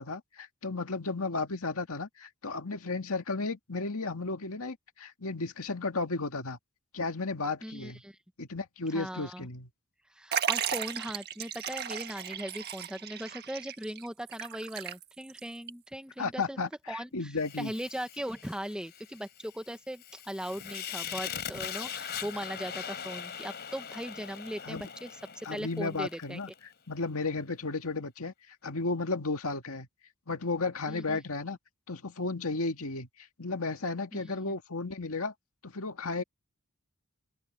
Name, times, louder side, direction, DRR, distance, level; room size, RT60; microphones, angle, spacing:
voice 1, 0.0-6.6 6.9-8.0 8.4-9.7 16.2-17.7 24.6-24.8 25.5-28.3 28.6-29.9 30.3-31.6 31.9-35.3 35.6-36.2, left 3 dB, 75° left, 2.0 m, -34 dB
voice 2, 7.6-8.2 8.9-9.5 10.1-16.6 16.9-17.3 17.6-26.4 30.9-31.2 34.1-34.3, equal, 5° right, 1.2 m, -39 dB
Liquid, 10.3-15.4 15.7-15.8 16.7-16.8, right 8 dB, 45° right, 1.5 m, -35 dB
Fire, 17.4-26.6, left 8 dB, 50° left, 4.0 m, -41 dB
open air
head